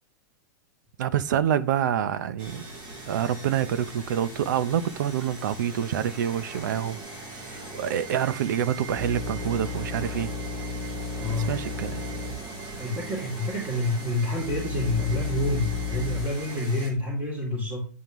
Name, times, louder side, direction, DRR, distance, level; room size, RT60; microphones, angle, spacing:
voice 1, 1.0-2.6 3.1-7.0 7.3-10.3 11.3-12.0, right 9 dB, 75° right, 0.6 m, -27 dB
sound 1, 2.4-16.9, right 2 dB, 40° right, 3.1 m, -40 dB
sound 2, 8.9-12.4 12.7-12.8 13.4-16.2, left 5 dB, 55° right, 4.3 m, -34 dB
voice 2, 11.2-11.5 12.8-17.9, left 2 dB, 15° right, 2.7 m, -28 dB
9.6 x 5.2 x 3.1 m
supercardioid pair, 165°, 10 cm